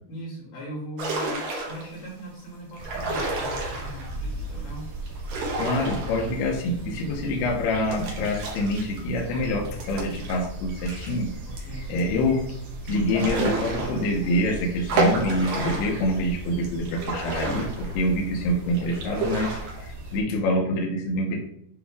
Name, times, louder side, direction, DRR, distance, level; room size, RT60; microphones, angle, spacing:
voice 1, 0.1-4.9 11.5-12.3, equal, 55° left, -5 dB, 3.7 m, -39 dB
sound 1, 1.0-2.0 2.7-4.2 5.1-6.7 7.0-7.1 7.9-11.2 11.6-11.7 12.0-12.1 12.9-14.4 14.9-16.1 16.6-18.3 18.7-19.9, right 2 dB, 75° right, 1.7 m, -30 dB
sound 2, 2.8-20.2, right 1 dB, 50° right, 2.2 m, -37 dB
voice 2, 5.6-11.3 11.9-12.4 12.8-21.4, left 1 dB, 75° left, 0 dB, 2.6 m, -26 dB
8.7 x 3.0 x 3.6 m, 0.72 s
omnidirectional pair, 5.4 m